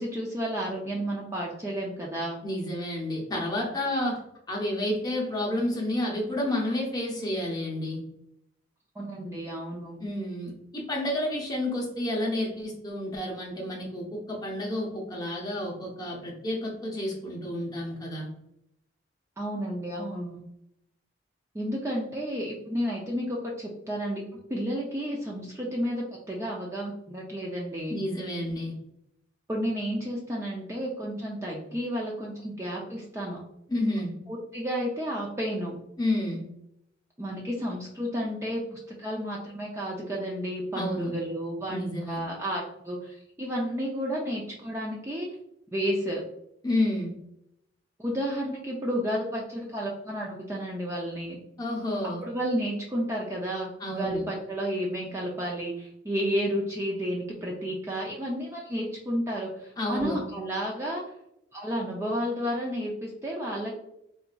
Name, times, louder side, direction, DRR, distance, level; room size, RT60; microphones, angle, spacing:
voice 1, 0.0-2.4 9.0-10.0 19.4-20.4 21.5-24.2 24.5-28.0 29.5-33.4 34.3-35.8 37.2-45.3 45.7-46.2 48.0-51.4 52.2-61.0 61.5-63.8, equal, 15° right, -3 dB, 0.3 m, -31 dB
voice 2, 2.4-4.2 4.5-8.0 10.0-18.3 27.9-28.7 33.7-34.1 36.0-36.4 40.7-41.1 41.7-42.3 46.6-47.1 51.6-52.2 53.8-54.3 59.8-60.2, left 1 dB, 20° left, -1 dB, 0.6 m, -30 dB
3.9 x 2.4 x 2.2 m, 0.80 s
head